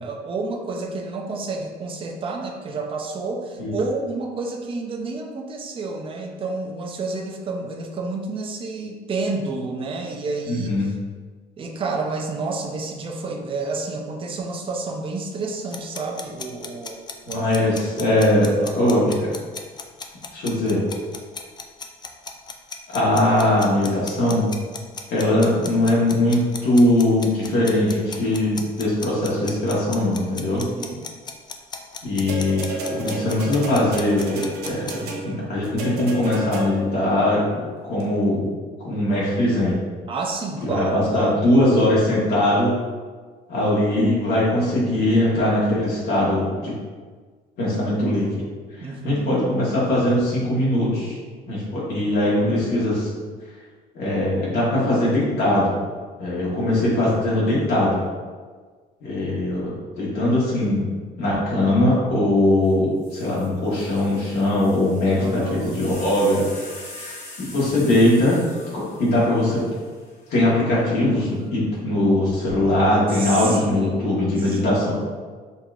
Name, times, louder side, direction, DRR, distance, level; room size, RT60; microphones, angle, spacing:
voice 1, 0.0-10.9 11.6-17.0 17.3-19.3 30.5-31.0 40.1-41.5 48.8-49.4 65.1-65.8 73.1-74.9, right 3 dB, 30° right, 1 dB, 0.6 m, -30 dB
voice 2, 10.5-10.9 17.3-19.1 20.3-20.8 22.9-24.5 25.1-30.6 32.0-38.5 38.8-39.8 40.6-42.8 43.5-46.7 47.6-48.3 48.8-51.2 51.5-53.1 53.9-55.8 56.2-58.0 59.0-60.9 61.2-66.4 67.5-68.4 68.7-69.7 70.3-74.9, left 1 dB, 70° left, -7 dB, 1.4 m, -21 dB
sound 1, 15.7-34.9, left 5 dB, 25° left, 0.4 m, -35 dB
sound 2, 32.3-37.0 38.0-38.1, right 2 dB, 75° right, 0.8 m, -32 dB
sound 3, 62.6-62.7 63.0-70.4 71.3-71.8, left 2 dB, 40° left, 1.2 m, -42 dB
5.4 x 2.9 x 2.5 m, 1.5 s
cardioid pair, 110°, 17 cm